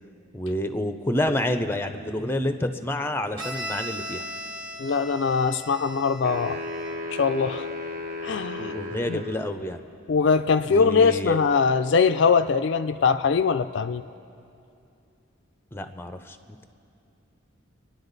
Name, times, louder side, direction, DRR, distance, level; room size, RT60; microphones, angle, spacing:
voice 1, 0.3-4.2 8.6-9.8 10.6-11.4 15.7-16.7, left 1 dB, 10° left, 8 dB, 0.6 m, -28 dB
Bowed string instrument, 3.4-7.1, equal, 20° right, 1.5 m, -37 dB
voice 2, 4.8-6.6 7.1-7.7 8.2-8.7 9.1-9.2 10.1-14.0, left 5 dB, 55° left, 10 dB, 0.4 m, -22 dB
sound 1, 6.2-9.6, left 1 dB, 40° right, 1.0 m, -34 dB
30.0 x 10.5 x 4.0 m, 2.6 s
head